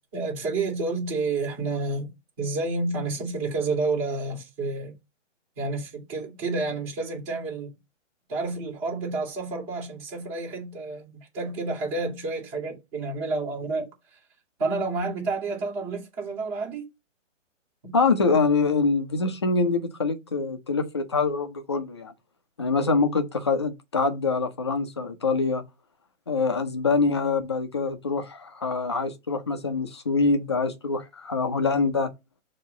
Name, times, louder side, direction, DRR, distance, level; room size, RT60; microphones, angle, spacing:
voice 1, 0.1-2.1 2.4-4.9 5.6-7.7 8.3-14.2 14.6-16.9 17.8-18.0, right 3 dB, 30° right, 3.0 m, -30 dB
voice 2, 17.9-22.1 22.6-25.6 26.3-32.1, left 4 dB, 25° left, 0.4 m, -25 dB
6.9 x 2.8 x 5.8 m
hypercardioid pair, 155°, 38 cm